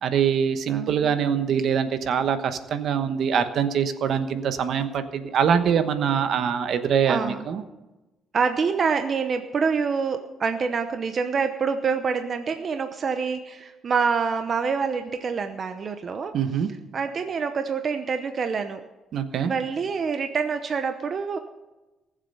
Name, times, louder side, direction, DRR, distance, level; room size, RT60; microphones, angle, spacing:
voice 1, 0.0-7.6 16.3-16.7 19.1-19.5, right 7 dB, 65° right, 10 dB, 1.1 m, -24 dB
voice 2, 0.7-1.1 7.1-7.5 8.3-16.3 16.9-18.8 19.4-21.4, right 5 dB, 45° right, 7 dB, 0.8 m, -26 dB
19.0 x 7.5 x 5.5 m, 1.1 s
cardioid pair, 120°, 0 cm